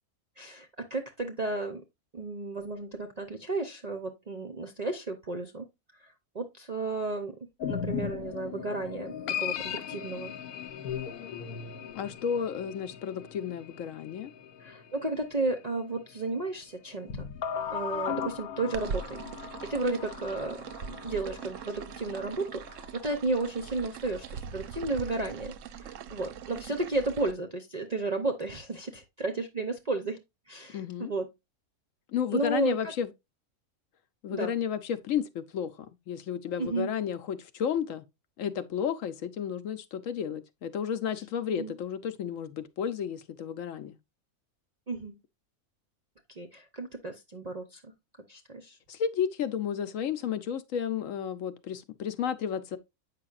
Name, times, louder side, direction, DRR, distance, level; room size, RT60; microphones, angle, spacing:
voice 1, 0.4-1.8 2.1-5.7 6.0-10.4 14.6-17.3 17.7-19.2 19.6-20.6 20.9-24.2 24.5-30.2 30.5-31.3 32.3-32.9 34.3-34.5 36.6-36.9 41.5-41.7 44.9-45.2 46.4-47.9 48.3-48.8, right 2 dB, 45° right, 0.5 m, -33 dB
sound 1, 7.6-15.8 16.1-16.3 17.1-23.6, left 8 dB, 85° left, 1.3 m, -38 dB
voice 2, 12.0-14.3 30.7-31.1 32.1-33.1 34.2-38.0 38.4-44.0 48.9-52.8, left 8 dB, 70° left, 1.0 m, -32 dB
sound 2, 18.7-27.3, right 7 dB, 65° right, 0.9 m, -41 dB
8.3 x 5.8 x 2.4 m
omnidirectional pair, 1.6 m